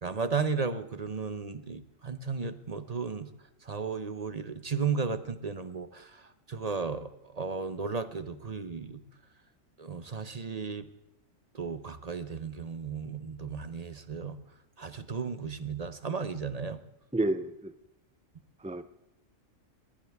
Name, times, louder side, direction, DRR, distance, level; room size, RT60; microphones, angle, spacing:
voice 1, 0.0-3.3 3.6-9.0 9.8-10.9 11.5-14.4 14.8-16.8, right 5 dB, 35° right, 12 dB, 0.7 m, -34 dB
voice 2, 17.1-17.7 18.6-18.8, right 2 dB, 10° right, 11 dB, 0.3 m, -29 dB
21.5 x 18.5 x 3.5 m, 0.88 s
omnidirectional pair, 1.3 m